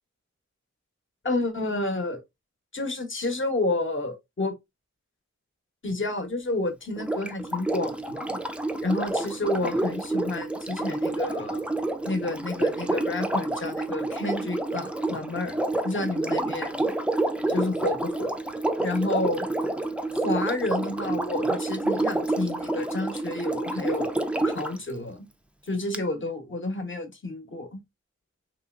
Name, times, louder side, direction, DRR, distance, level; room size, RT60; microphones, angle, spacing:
voice 1, 1.2-2.2 2.7-4.6 5.8-8.4 8.8-11.6 12.0-15.6 15.8-16.9 17.5-18.3 18.8-19.5 20.1-24.1 24.5-25.3 25.7-27.8, left 2 dB, 45° left, 0.9 m, -30 dB
Sink (filling or washing), 7.0-24.8 25.9-26.0, right 2 dB, 5° right, 0.4 m, -28 dB
3.0 x 2.7 x 2.4 m
wide cardioid pair, 50°, 29 cm